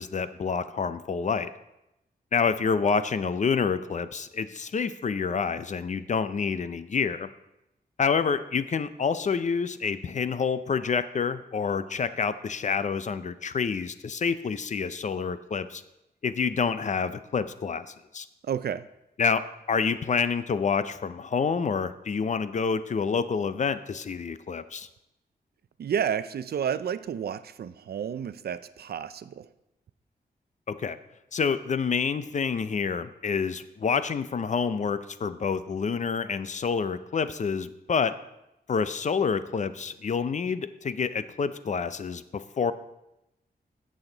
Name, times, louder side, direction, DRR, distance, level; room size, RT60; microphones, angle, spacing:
voice 1, 0.0-1.5 2.3-7.3 8.0-15.8 16.2-18.3 19.2-24.9 30.7-31.0 31.3-38.2 38.7-42.7, left 5 dB, 45° left, 13 dB, 0.5 m, -28 dB
voice 2, 18.4-18.8 25.8-29.5, right 8 dB, 70° right, 14 dB, 0.5 m, -31 dB
16.0 x 6.4 x 3.9 m, 0.90 s
wide cardioid pair, 120°, 17 cm